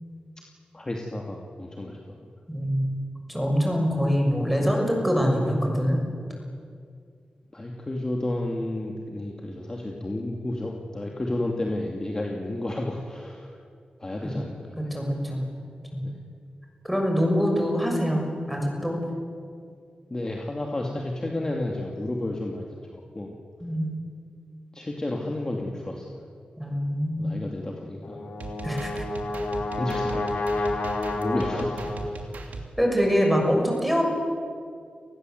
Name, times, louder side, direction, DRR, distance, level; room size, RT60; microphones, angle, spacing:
voice 1, 0.7-2.1 7.5-13.5 14.0-14.8 16.0-16.2 20.1-22.7 22.9-23.3 24.7-26.2 27.2-28.3 29.7-30.8 31.1-32.3, left 1 dB, 25° left, 0 dB, 2.5 m, -32 dB
voice 2, 2.5-3.0 3.3-6.0 14.2-14.3 14.8-15.4 15.9-16.0 16.8-19.0 23.6-24.0 26.6-27.4 28.6-29.0 32.8-34.0, equal, ahead, 1 dB, 6.6 m, -24 dB
Brass instrument, 28.0-32.3, left 2 dB, 70° left, 4.3 m, -30 dB
sound 1, 28.4-32.7, right 3 dB, 85° right, 3.1 m, -38 dB
30.0 x 20.0 x 8.0 m, 2.2 s
wide cardioid pair, 115°, 3 cm